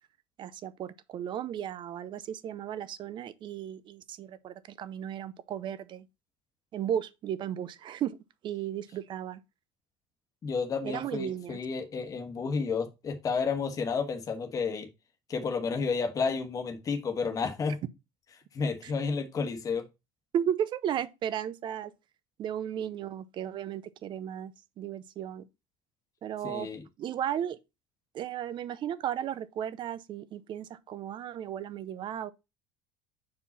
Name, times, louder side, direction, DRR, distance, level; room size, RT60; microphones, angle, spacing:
voice 1, 0.4-6.1 6.7-8.2 8.4-9.4 10.8-11.6 18.8-18.9 20.3-21.9 22.4-25.5 26.2-26.7 27.0-27.6 28.1-32.3, right 10 dB, 40° right, 0.6 m, -35 dB
voice 2, 10.4-14.9 15.3-17.8 18.5-19.8 26.4-26.8, left 5 dB, 25° left, 1.3 m, -31 dB
5.8 x 4.8 x 4.0 m
cardioid pair, 145°, 13 cm